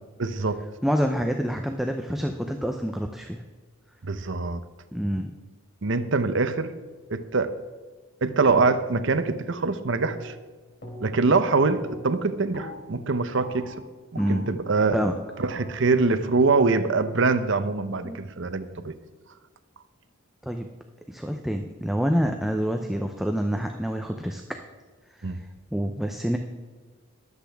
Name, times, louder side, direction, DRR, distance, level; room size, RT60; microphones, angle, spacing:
voice 1, 0.2-0.6 4.0-4.6 5.8-6.7 7.1-7.5 8.2-10.4 11.0-13.7 14.1-15.0 15.4-18.9 25.2-25.4, right 3 dB, 60° right, 11 dB, 0.7 m, -24 dB
voice 2, 0.8-3.4 4.9-5.3 14.2-14.5 14.9-15.1 18.0-18.2 20.4-20.7 21.1-24.4 25.2-25.3 25.7-26.4, equal, ahead, 4 dB, 0.5 m, -27 dB
sound 1, 10.0-10.5 10.8-11.3 11.6-17.4, left 1 dB, 50° left, 3.1 m, -44 dB
21.5 x 8.2 x 3.5 m, 1.4 s
head